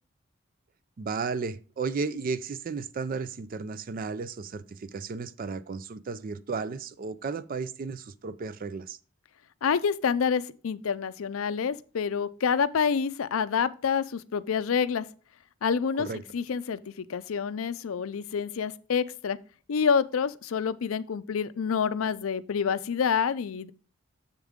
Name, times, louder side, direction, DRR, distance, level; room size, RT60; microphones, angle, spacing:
voice 1, 1.0-9.0 16.0-16.2, right 4 dB, 45° right, 0.4 m, -34 dB
voice 2, 9.6-15.1 15.6-16.1 16.3-19.4 19.7-23.7, left 6 dB, 85° left, 0.5 m, -27 dB
7.3 x 6.9 x 3.6 m
head